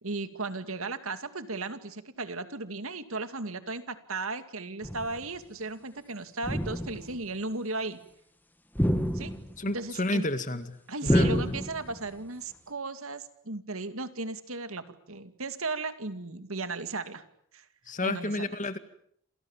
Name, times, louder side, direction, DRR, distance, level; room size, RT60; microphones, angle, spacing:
voice 1, 0.0-8.0 9.1-9.3 9.7-10.2 10.9-17.2 17.5-17.7 18.0-18.5, right 3 dB, 70° right, 10 dB, 2.4 m, -36 dB
sound 1, 4.8-5.2 6.4-7.2 8.7-9.7 11.1-12.0, equal, 10° left, 2.1 m, -28 dB
voice 2, 9.6-11.6 17.9-18.8, left 2 dB, 35° left, 11 dB, 2.1 m, -31 dB
28.5 x 27.5 x 7.4 m, 0.68 s
head